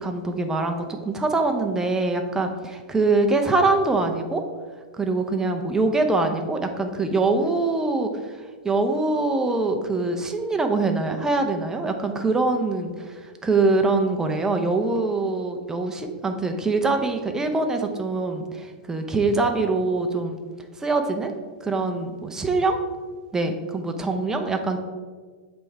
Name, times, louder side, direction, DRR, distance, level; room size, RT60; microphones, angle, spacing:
voice 1, 0.0-4.4 4.9-20.4 20.8-21.3 21.6-22.8 23.3-24.8, right 3 dB, 10° right, 5 dB, 0.6 m, -24 dB
7.5 x 3.4 x 4.7 m, 1.5 s
hypercardioid pair, 135°, 5 cm